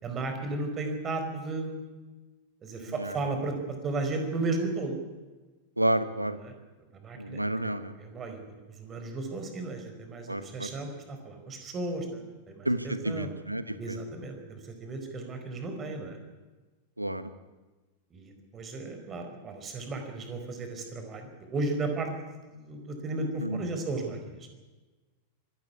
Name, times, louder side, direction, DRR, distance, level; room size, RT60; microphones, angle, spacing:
voice 1, 0.0-1.8 2.6-5.0 6.4-6.5 6.9-8.4 8.7-13.3 13.8-16.2 18.1-24.5, right 2 dB, 25° right, 5 dB, 4.6 m, -35 dB
voice 2, 5.8-6.4 7.2-7.9 10.3-10.7 12.6-14.0 17.0-17.3 23.4-23.6, right 1 dB, 85° right, 13 dB, 1.2 m, -30 dB
23.5 x 13.0 x 9.6 m, 1.2 s
figure-of-eight pair, 90°, 0 cm